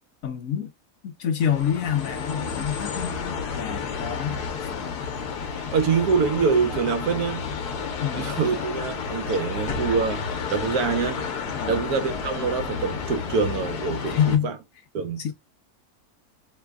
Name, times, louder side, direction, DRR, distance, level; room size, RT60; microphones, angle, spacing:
voice 1, 0.2-0.7 1.0-4.7 8.0-8.4 11.5-11.8 14.0-14.5 15.2-15.3, left 9 dB, 65° left, 1.1 m, -27 dB
sound 1, 1.4-14.4, left 5 dB, 90° left, 1.3 m, -31 dB
voice 2, 5.7-7.4 8.1-10.2 10.5-11.3 11.6-14.6 14.9-15.2, right 5 dB, 75° right, 1.2 m, -25 dB
3.3 x 2.2 x 3.5 m
omnidirectional pair, 1.6 m